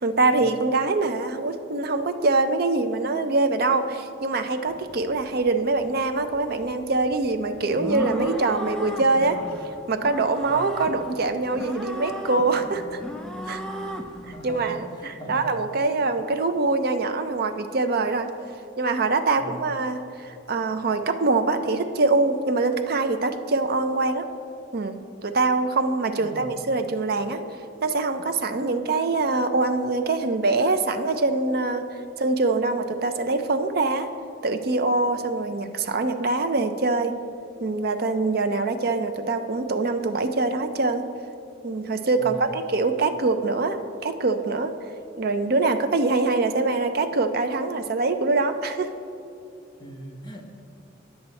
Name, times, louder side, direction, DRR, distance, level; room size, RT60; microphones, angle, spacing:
voice 1, 0.0-9.4 9.9-13.0 13.5-13.6 14.3-18.3 18.8-24.3 24.7-25.0 25.2-27.4 27.8-31.8 32.2-34.1 34.4-37.2 37.6-41.1 41.6-44.7 45.2-48.9, right 3 dB, 50° right, 8 dB, 0.6 m, -24 dB
sound 1, 4.7-14.6, equal, 5° left, 0.5 m, -36 dB
voice 2, 13.9-15.4 19.4-19.6 26.2-26.5 42.2-42.5 49.8-50.6, right 1 dB, 20° left, 1 dB, 0.9 m, -41 dB
9.8 x 7.7 x 4.1 m, 2.6 s
head